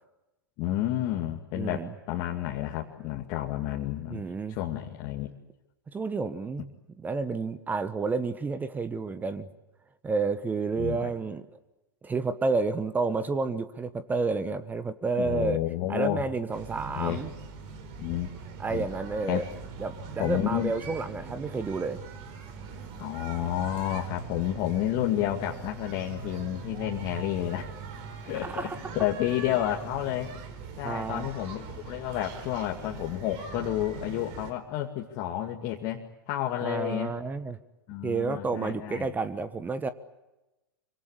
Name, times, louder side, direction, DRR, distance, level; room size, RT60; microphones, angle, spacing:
voice 1, 0.6-4.2 4.5-5.3 10.8-11.1 15.2-16.2 16.9-17.2 18.0-18.3 18.7-18.8 19.3-19.4 20.2-20.7 23.0-27.7 28.2-30.3 30.8-37.1 37.9-39.1, left 13 dB, 40° left, 0 dB, 2.3 m, -30 dB
voice 2, 1.5-1.9 4.1-4.6 5.9-6.7 7.0-9.5 10.0-11.4 12.0-15.6 15.9-17.3 18.6-19.4 19.8-22.0 28.4-28.8 30.8-31.3 36.6-37.6 38.0-39.9, right 4 dB, 15° right, 13 dB, 1.3 m, -30 dB
sound 1, 16.5-34.5, right 5 dB, 45° right, 4.3 m, -42 dB
26.0 x 25.0 x 8.2 m, 1.0 s
figure-of-eight pair, 95°, 12 cm